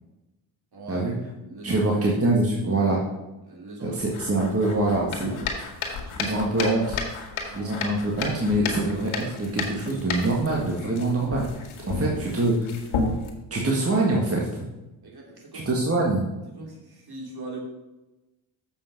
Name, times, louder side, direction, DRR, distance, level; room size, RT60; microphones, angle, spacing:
voice 1, 0.7-1.1 1.4-1.9 3.4-4.0 4.6-4.8 5.3-5.6 6.0-6.3 7.5-7.8 11.8-12.2 15.0-15.7 16.5-17.6, right 3 dB, 50° right, 0 dB, 2.9 m, -41 dB
voice 2, 1.6-3.0 3.8-5.4 6.2-7.0 7.5-11.4 11.9-12.5 13.5-14.6 15.5-16.3, right 2 dB, 30° right, -2 dB, 1.7 m, -24 dB
sound 1, 4.0-13.3, left 4 dB, 80° left, 1.7 m, -33 dB
7.1 x 5.9 x 5.9 m, 1.0 s
supercardioid pair, 65°, 50 cm